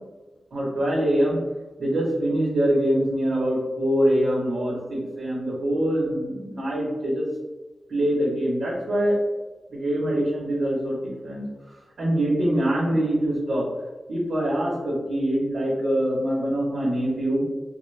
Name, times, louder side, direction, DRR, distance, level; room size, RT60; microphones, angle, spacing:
voice 1, 0.5-1.4 1.8-7.3 7.9-9.2 9.7-11.4 12.0-13.7 14.1-17.4, right 1 dB, 70° right, -6 dB, 0.9 m, -24 dB
3.6 x 2.1 x 3.2 m, 1.2 s
wide cardioid pair, 170°, 0 cm